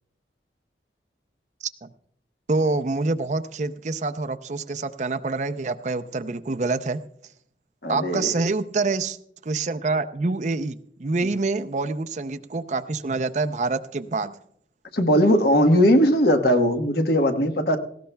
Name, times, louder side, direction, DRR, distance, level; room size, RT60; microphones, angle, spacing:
voice 1, 2.5-7.0 7.9-9.2 9.4-14.3, right 3 dB, 40° right, 9 dB, 0.5 m, -26 dB
voice 2, 7.8-8.3 14.9-17.8, equal, 65° left, 5 dB, 1.2 m, -19 dB
18.5 x 16.0 x 2.2 m, 0.68 s
head